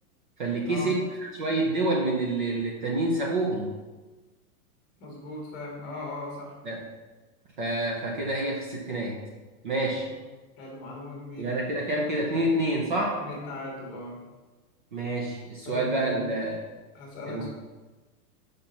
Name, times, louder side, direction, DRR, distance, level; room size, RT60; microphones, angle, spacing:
voice 1, 0.4-3.7 6.6-6.8 7.6-9.1 9.6-10.1 11.4-13.2 14.9-16.6 17.3-17.5, right 2 dB, 35° right, -1 dB, 0.7 m, -28 dB
voice 2, 5.0-6.6 10.1-10.2 10.6-11.5 13.2-14.2 15.6-16.4 16.9-17.5, left 2 dB, 20° left, -2 dB, 1.4 m, -38 dB
5.2 x 4.3 x 5.6 m, 1.2 s
supercardioid pair, 175°, 45 cm